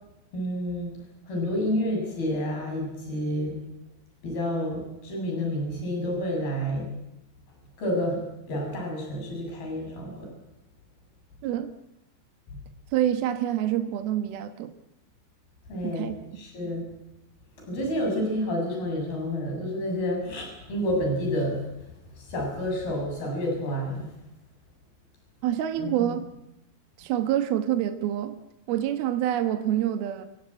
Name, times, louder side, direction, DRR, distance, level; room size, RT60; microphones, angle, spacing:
voice 1, 0.3-1.0 1.3-3.6 4.2-6.9 7.8-8.2 8.5-10.3 12.5-12.6 15.7-16.9 17.6-21.7 22.2-24.1 25.8-26.2, equal, 55° left, 1 dB, 9.1 m, -29 dB
voice 2, 12.9-14.7 15.8-16.1 25.4-26.2 27.0-28.4 28.7-30.3, right 11 dB, 70° right, 7 dB, 2.8 m, -26 dB
28.0 x 17.0 x 8.9 m, 0.89 s
omnidirectional pair, 5.2 m